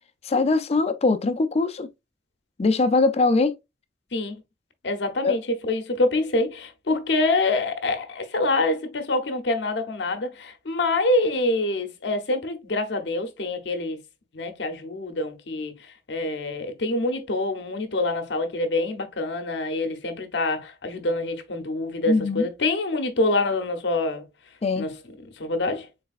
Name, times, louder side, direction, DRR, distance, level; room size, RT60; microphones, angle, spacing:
voice 1, 0.2-1.9 2.6-3.5 5.2-5.4 22.1-22.5 24.6-24.9, left 3 dB, 35° left, 0.4 m, -21 dB
voice 2, 4.8-5.4 5.7-14.0 14.3-24.2 24.8-24.9 25.3-25.9, left 2 dB, 65° left, 0.7 m, -26 dB
4.0 x 3.3 x 2.4 m
head